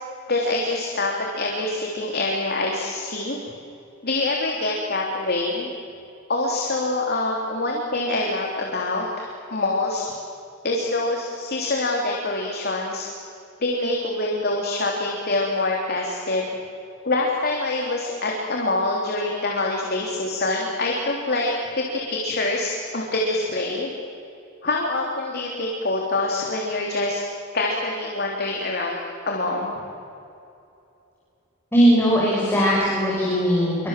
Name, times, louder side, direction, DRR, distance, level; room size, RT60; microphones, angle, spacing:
voice 1, 0.3-3.4 4.0-5.7 6.3-10.1 10.6-13.1 13.6-16.4 17.0-23.9 24.6-27.2 27.5-29.0 29.2-29.7, left 2 dB, 50° left, -1 dB, 3.3 m, -25 dB
voice 2, 31.7-33.9, equal, 10° left, -5 dB, 6.3 m, -19 dB
27.5 x 25.0 x 7.6 m, 2.7 s
head